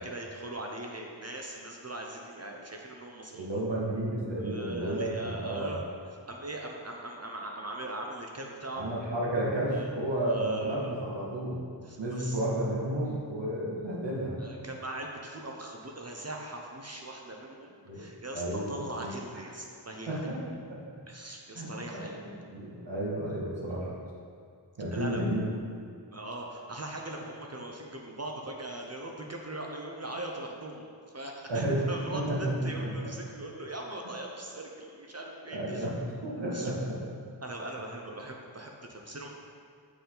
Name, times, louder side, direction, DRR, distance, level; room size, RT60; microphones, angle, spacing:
voice 1, 0.0-3.6 4.4-8.9 9.7-9.9 10.2-11.0 11.8-12.4 14.4-20.3 21.1-22.3 24.9-25.2 26.1-30.9 31.1-35.9 36.4-36.7 37.4-39.3, right 1 dB, 35° right, 0 dB, 0.8 m, -40 dB
voice 2, 3.3-5.7 8.8-11.6 12.0-14.4 17.9-18.1 18.3-19.1 20.1-20.4 20.7-20.8 21.5-23.9 24.8-25.6 31.5-31.8 32.1-32.9 35.5-36.0 36.2-37.0, right 1 dB, 70° right, -5 dB, 1.9 m, -32 dB
7.1 x 6.9 x 3.9 m, 2.3 s
wide cardioid pair, 75°, 45 cm